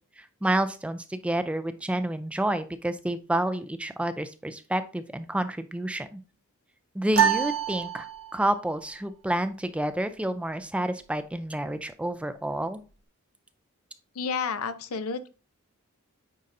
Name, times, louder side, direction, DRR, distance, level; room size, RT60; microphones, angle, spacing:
voice 1, 0.2-6.2 6.9-8.1 8.3-12.8, right 1 dB, 5° right, 11 dB, 0.3 m, -29 dB
sound 1, 7.1-8.6, right 8 dB, 65° right, 0.7 m, -26 dB
voice 2, 14.2-15.3, left 5 dB, 80° left, 11 dB, 0.6 m, -30 dB
9.3 x 4.0 x 2.5 m, 0.35 s
head